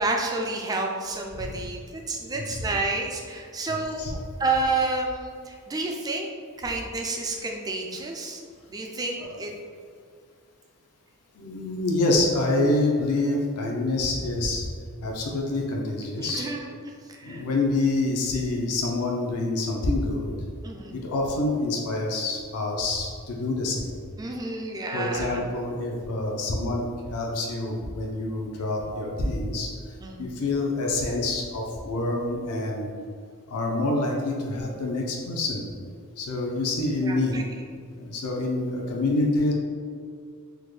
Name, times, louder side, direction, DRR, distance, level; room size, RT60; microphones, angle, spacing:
voice 1, 0.0-6.3 6.6-8.4 8.7-9.5 16.2-16.7 17.1-17.4 20.6-20.9 24.2-25.4 30.0-30.3 37.0-37.4, right 3 dB, 15° right, 1 dB, 0.3 m, -30 dB
voice 2, 3.7-4.1 9.2-9.4 11.4-14.7 15.0-16.4 17.2-20.3 20.9-23.9 24.9-29.7 30.2-32.9 33.5-35.7 36.2-37.4 37.9-39.5, left 2 dB, 80° left, -1 dB, 0.5 m, -27 dB
3.5 x 2.1 x 3.1 m, 2.1 s
head